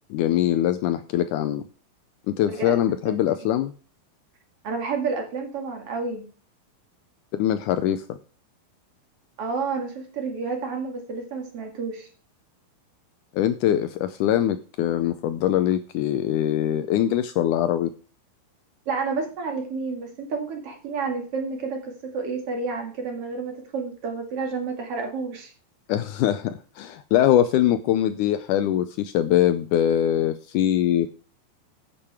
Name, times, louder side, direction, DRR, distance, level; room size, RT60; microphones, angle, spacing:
voice 1, 0.1-1.6 2.3-3.7 7.3-8.0 13.4-17.9 25.9-31.1, left 11 dB, 85° left, 11 dB, 1.8 m, -22 dB
voice 2, 2.5-2.8 3.1-3.3 4.6-6.3 9.4-12.1 18.9-25.5, right 4 dB, 45° right, 3 dB, 2.8 m, -30 dB
8.7 x 8.6 x 4.8 m, 0.37 s
omnidirectional pair, 4.2 m